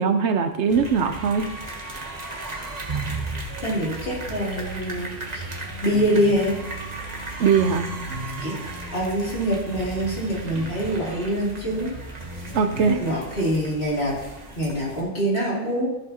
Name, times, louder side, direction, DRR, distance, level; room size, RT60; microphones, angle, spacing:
voice 1, 0.0-1.5 7.4-7.9 12.5-13.0, right 6 dB, 70° right, 8 dB, 0.9 m, -21 dB
sound 1, 0.7-15.0, right 3 dB, 35° right, 1.3 m, -36 dB
voice 2, 3.6-5.4 5.8-6.5 8.4-8.6 8.9-12.0 12.4-14.1 14.5-15.9, equal, 55° left, -6 dB, 3.3 m, -25 dB
sound 2, 4.3-13.0, right 1 dB, 90° right, 2.3 m, -38 dB
14.0 x 6.9 x 2.9 m, 0.95 s
omnidirectional pair, 1.3 m